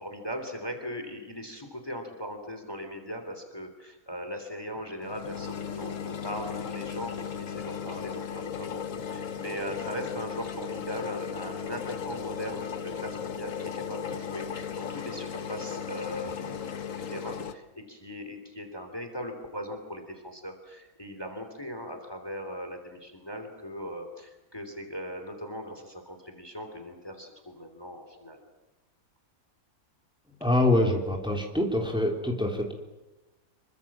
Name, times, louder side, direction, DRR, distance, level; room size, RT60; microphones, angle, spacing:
voice 1, 0.0-28.4, equal, 15° left, 6 dB, 3.4 m, -39 dB
sound 1, 5.0-17.5, left 7 dB, 60° left, 1.6 m, -36 dB
voice 2, 30.4-32.7, left 1 dB, 5° right, 1 dB, 3.5 m, -25 dB
27.0 x 24.0 x 7.5 m, 1.1 s
omnidirectional pair, 1.6 m